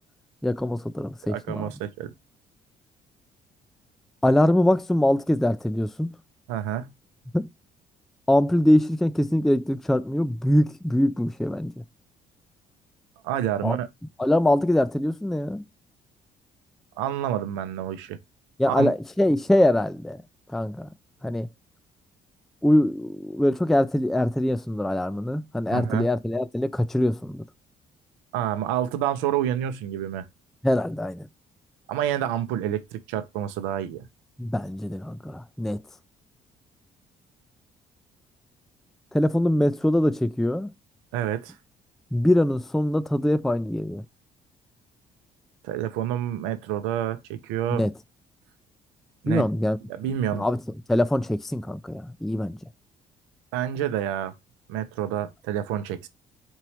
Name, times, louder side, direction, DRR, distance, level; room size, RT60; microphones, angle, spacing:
voice 1, 0.4-1.7 4.2-6.1 7.3-7.5 8.3-11.7 13.6-13.8 14.2-15.6 18.6-20.2 20.5-20.9 21.2-21.5 22.6-27.4 30.6-31.3 34.4-35.8 39.1-40.7 42.1-44.0 47.7-47.9 49.3-49.8 50.3-50.6 50.9-52.6, left 1 dB, ahead, 0.4 m, -23 dB
voice 2, 1.2-2.1 6.5-6.9 13.2-13.9 17.0-18.2 18.7-18.9 25.7-26.1 28.3-30.2 31.9-34.1 41.1-41.6 45.6-47.9 49.2-49.4 49.9-50.4 53.5-54.3 54.7-56.1, right 11 dB, 80° right, 0.7 m, -28 dB
4.5 x 2.9 x 3.1 m
hypercardioid pair, 55°, 19 cm